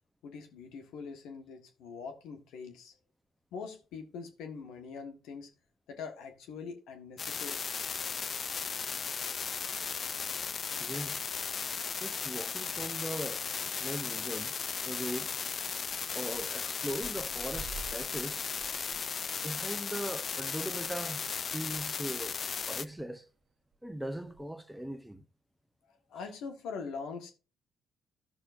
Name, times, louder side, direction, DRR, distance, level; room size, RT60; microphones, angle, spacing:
voice 1, 0.2-2.9 3.5-5.5 5.9-7.6 26.1-27.3, left 5 dB, 75° left, 1.3 m, -43 dB
sound 1, 7.2-22.8, left 6 dB, 50° left, 0.4 m, -36 dB
voice 2, 10.8-11.3 11.9-14.5 14.8-15.3 16.1-18.5 19.4-22.4 22.7-23.3 23.8-25.2, right 1 dB, 5° right, 1.0 m, -40 dB
sound 2, 15.9-16.5 16.7-21.8 22.2-22.3 22.5-23.1 23.7-24.4, right 4 dB, 50° right, 1.1 m, -50 dB
14.0 x 6.1 x 2.6 m
hypercardioid pair, 50°, 0 cm